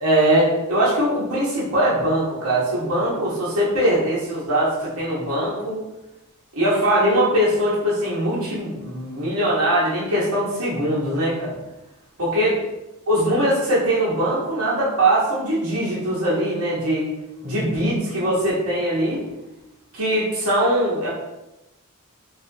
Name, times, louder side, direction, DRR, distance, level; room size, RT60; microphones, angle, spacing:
voice 1, 0.0-5.8 6.5-11.5 12.2-12.6 13.1-17.1 17.4-19.2 19.9-21.1, right 1 dB, 75° right, -7 dB, 1.2 m, -21 dB
3.4 x 2.5 x 2.7 m, 0.96 s
head